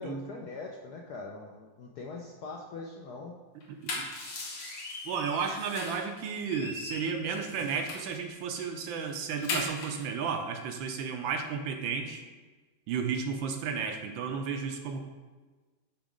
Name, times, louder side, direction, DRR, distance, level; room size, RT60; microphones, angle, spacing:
voice 1, 0.0-3.4, left 3 dB, 70° left, 0 dB, 0.9 m, -42 dB
sound 1, 3.6-6.1 6.4-8.2 8.6-8.7 9.0-10.0, left 2 dB, 90° left, 2.1 m, -38 dB
voice 2, 5.0-12.2 12.9-15.0, right 6 dB, 75° right, 5 dB, 1.3 m, -33 dB
8.8 x 3.1 x 5.0 m, 1.3 s
omnidirectional pair, 2.3 m